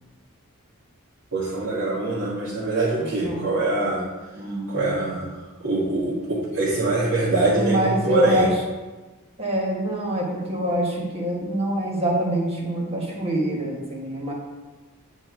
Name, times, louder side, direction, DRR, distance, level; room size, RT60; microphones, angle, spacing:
voice 1, 1.3-4.0 4.7-5.3 5.6-8.5, right 2 dB, 60° right, -9 dB, 2.1 m, -23 dB
voice 2, 3.0-3.4 4.4-5.1 7.5-8.5 9.4-14.3, right 1 dB, 30° right, -2 dB, 1.4 m, -26 dB
9.6 x 4.3 x 4.5 m, 1.2 s
head